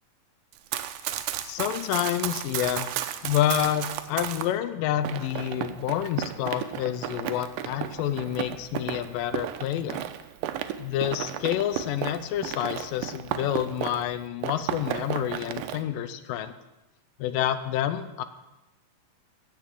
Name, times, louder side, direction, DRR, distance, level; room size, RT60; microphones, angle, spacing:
Run, 0.5-4.5 5.0-14.1 14.4-15.8, right 11 dB, 85° right, 2.4 m, -33 dB
voice 1, 1.4-10.0 10.8-16.5 17.2-18.2, left 11 dB, 85° left, 12 dB, 2.3 m, -28 dB
15.5 x 5.5 x 7.7 m, 1.0 s
omnidirectional pair, 3.9 m